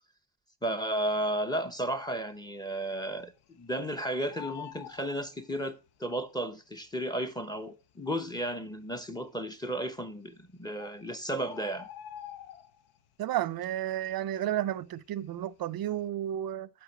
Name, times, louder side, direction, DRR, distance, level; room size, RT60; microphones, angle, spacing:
voice 1, 0.6-3.3 3.6-11.9, right 1 dB, 10° left, 0.8 m, -33 dB
Bird, 1.4-2.0 2.3-2.4 2.7-3.9 4.1-6.0 6.8-6.9 7.5-7.6 7.8-7.9 8.6-9.0 10.0-10.1 10.5-10.6 10.8-13.1 13.4-13.7 14.0-15.4 15.8-16.0, left 9 dB, 85° left, 0.9 m, -47 dB
voice 2, 13.2-16.7, right 12 dB, 50° right, 0.5 m, -32 dB
8.2 x 4.5 x 6.0 m
cardioid pair, 120°, 48 cm